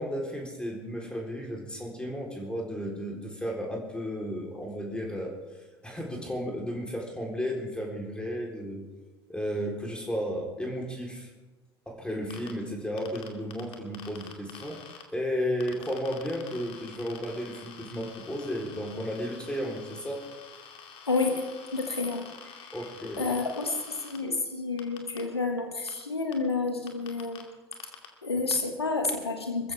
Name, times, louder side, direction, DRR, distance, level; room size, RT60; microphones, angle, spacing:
voice 1, 0.0-8.9 9.3-11.3 11.9-20.2 22.7-23.3, equal, 5° left, -1 dB, 3.9 m, -34 dB
sound 1, 12.3-12.5 13.0-15.0 15.6-24.2 24.8-25.2 25.9-26.0 26.3-26.4 26.9-27.4 27.7-28.1, left 8 dB, 45° left, 2.5 m, -47 dB
voice 2, 21.1-21.5 21.7-22.7 23.2-27.4 28.2-29.7, left 3 dB, 85° left, 5 dB, 1.5 m, -30 dB
25.5 x 15.0 x 3.6 m, 1.2 s
figure-of-eight pair, 70°, 13 cm